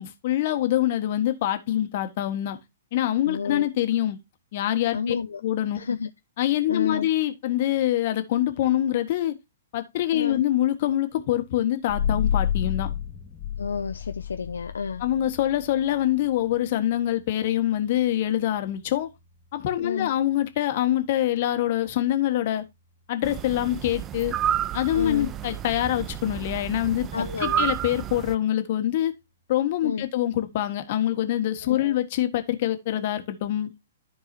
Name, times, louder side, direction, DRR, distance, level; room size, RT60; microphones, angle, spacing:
voice 1, 0.0-2.6 2.9-4.2 4.5-5.1 5.4-6.0 6.4-9.3 9.7-12.9 15.0-19.1 19.5-22.6 23.1-24.4 24.7-29.1 29.5-33.7, left 12 dB, 50° left, 1.6 m, -25 dB
voice 2, 3.2-3.7 4.9-5.4 5.8-6.1 6.7-7.1 10.1-10.4 13.6-15.0 19.8-20.1 24.9-25.3 27.1-27.7 29.8-30.0 31.6-31.9, left 6 dB, 75° left, 0.6 m, -30 dB
sound 1, 11.9-23.1, left 9 dB, 20° left, 2.2 m, -33 dB
sound 2, 23.2-28.4, right 10 dB, 25° right, 0.5 m, -30 dB
14.0 x 4.6 x 2.7 m
figure-of-eight pair, 115°, 0 cm